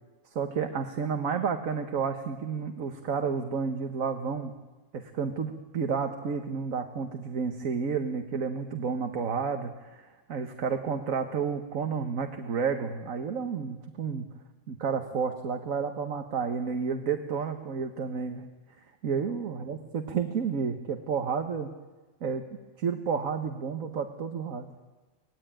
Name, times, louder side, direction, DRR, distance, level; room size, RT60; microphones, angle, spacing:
voice 1, 0.4-4.5 4.9-14.3 14.7-18.5 19.0-21.7 22.2-22.5 22.8-24.7, right 6 dB, 85° right, 6 dB, 1.7 m, -31 dB
25.0 x 19.0 x 9.0 m, 1.2 s
omnidirectional pair, 1.4 m